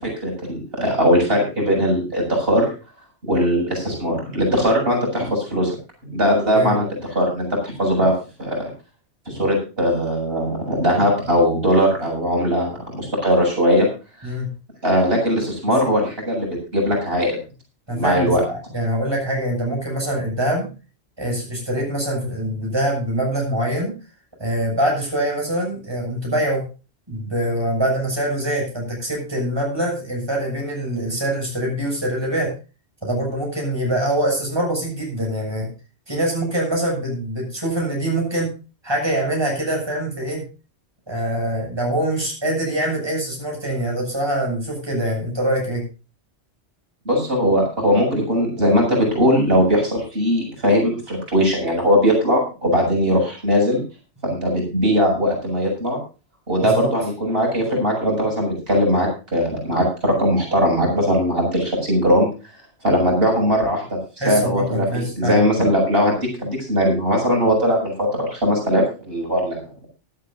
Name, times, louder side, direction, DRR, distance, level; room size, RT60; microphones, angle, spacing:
voice 1, 0.0-2.7 3.2-5.7 6.0-8.1 8.4-8.7 9.3-13.9 14.2-14.3 14.8-17.4 17.9-18.4 47.1-53.8 54.2-56.0 56.5-62.3 62.8-64.0 64.2-69.6, equal, 55° right, -1 dB, 7.5 m, -20 dB
voice 2, 17.9-18.3 18.7-20.7 21.2-23.9 24.4-26.7 27.1-32.5 33.0-35.7 36.1-38.5 38.8-40.4 41.1-45.8 56.6-56.9 64.2-65.4, right 1 dB, 20° right, -1 dB, 7.3 m, -24 dB
19.0 x 12.5 x 2.6 m, 0.33 s
omnidirectional pair, 1.2 m